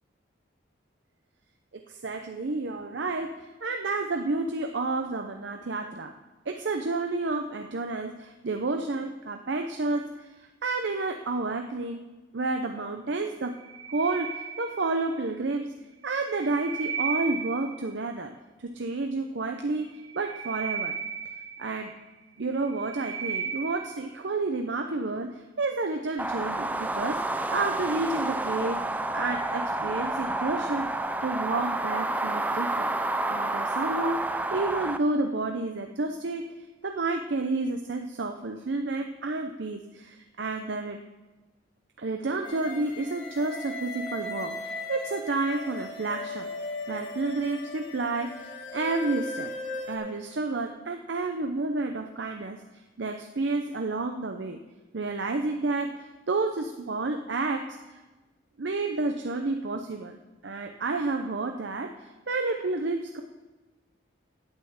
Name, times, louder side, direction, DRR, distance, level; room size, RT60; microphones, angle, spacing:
voice 1, 1.9-6.1 6.5-12.1 12.3-13.6 13.9-15.7 16.0-18.3 18.6-21.0 21.6-21.9 22.4-27.2 27.5-28.9 29.1-30.9 31.2-32.9 33.3-36.5 36.8-41.0 42.0-46.5 46.9-49.5 49.9-52.6 53.0-54.6 54.9-58.0 58.6-60.2 60.4-63.2, right 3 dB, 70° right, 5 dB, 0.6 m, -30 dB
sound 1, 13.5-15.2 16.1-18.0 19.9-22.0 22.5-24.1, right 6 dB, 35° right, 2.4 m, -35 dB
sound 2, 26.2-35.0, right 2 dB, 10° right, 0.4 m, -29 dB
sound 3, 42.4-50.0, left 2 dB, 65° left, 1.9 m, -38 dB
8.8 x 7.9 x 8.5 m, 1.2 s
head